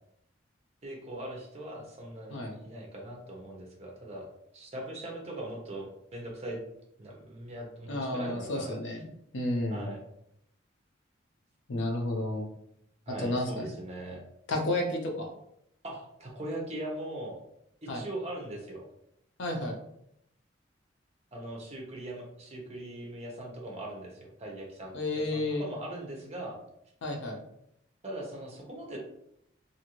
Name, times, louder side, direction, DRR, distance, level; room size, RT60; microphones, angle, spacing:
voice 1, 0.8-4.3 4.5-6.6 7.0-8.8 9.7-10.0 13.1-14.2 15.8-17.4 17.8-18.8 21.3-26.6 28.0-29.0, right 1 dB, 30° right, -1 dB, 0.7 m, -40 dB
voice 2, 7.9-9.0 9.3-9.9 11.7-12.5 13.2-13.7 14.5-15.3 17.9-18.0 19.4-19.8 24.9-25.6 27.0-27.4, left 1 dB, 70° left, 2 dB, 0.6 m, -31 dB
2.7 x 2.5 x 2.9 m, 0.76 s
head